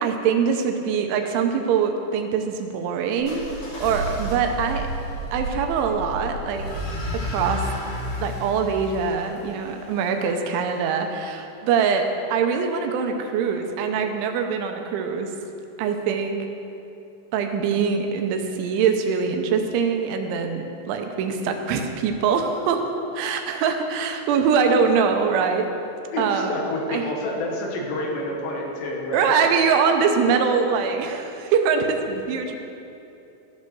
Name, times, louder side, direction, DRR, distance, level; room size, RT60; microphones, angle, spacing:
voice 1, 0.0-3.5 3.8-4.9 5.3-6.6 7.3-7.7 8.2-12.0 12.3-15.3 15.8-16.4 17.3-22.9 23.2-25.7 26.2-26.6 26.9-27.0 29.1-32.6, right 6 dB, 85° right, 5 dB, 3.1 m, -23 dB
sound 1, 3.2-10.1, equal, 55° left, 3.6 m, -31 dB
voice 2, 26.1-29.4, left 1 dB, 75° left, -1 dB, 3.2 m, -28 dB
14.5 x 5.3 x 6.1 m, 2.7 s
omnidirectional pair, 5.4 m